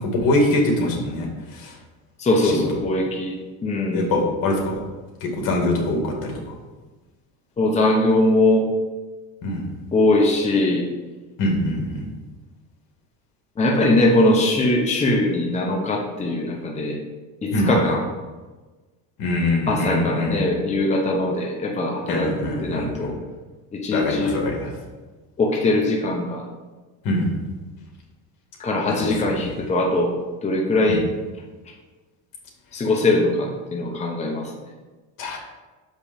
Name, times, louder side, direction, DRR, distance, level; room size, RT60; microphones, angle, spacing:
voice 1, 0.0-1.8 2.4-2.8 3.9-4.8 5.2-6.6 9.4-9.7 11.4-12.1 17.5-17.8 19.2-20.4 22.1-23.1 23.9-24.7 27.0-27.4 28.9-29.6 30.9-31.0 35.2-35.4, left 1 dB, 65° left, 0 dB, 2.2 m, -24 dB
voice 2, 2.2-4.1 7.6-8.7 9.9-10.9 13.6-17.0 17.4-18.0 19.7-23.2 23.7-24.4 25.4-26.5 28.6-30.1 30.4-31.0 32.7-34.5, left 2 dB, 20° left, 0 dB, 0.9 m, -21 dB
6.7 x 5.3 x 5.1 m, 1.3 s
cardioid pair, 135°, 37 cm